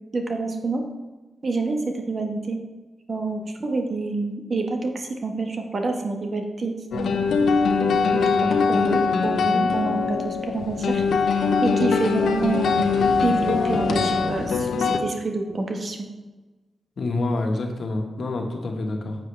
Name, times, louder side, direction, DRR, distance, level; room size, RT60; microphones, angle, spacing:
voice 1, 0.1-0.8 1.4-2.6 3.1-7.1 8.1-11.0 11.6-12.9 13.2-16.1, right 3 dB, 50° right, 3 dB, 1.5 m, -27 dB
sound 1, 6.9-15.0, left 5 dB, 80° left, 0.8 m, -22 dB
voice 2, 17.0-19.2, left 2 dB, 65° left, 2 dB, 1.5 m, -27 dB
9.4 x 7.5 x 3.4 m, 1.2 s
cardioid pair, 55°, 0 cm